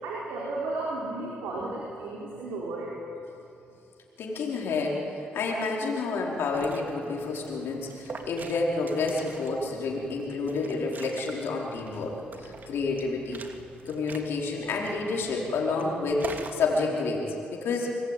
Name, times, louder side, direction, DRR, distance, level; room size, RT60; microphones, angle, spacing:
voice 1, 0.0-3.0, right 2 dB, 90° right, -4 dB, 4.4 m, -33 dB
voice 2, 4.2-5.0 5.3-13.4 13.9-17.9, left 3 dB, 75° left, -1 dB, 4.8 m, -29 dB
Liquid, 6.3-16.7, right 4 dB, 50° right, 2.6 m, -44 dB
26.0 x 20.5 x 9.3 m, 2.7 s
supercardioid pair, 60°, 4 cm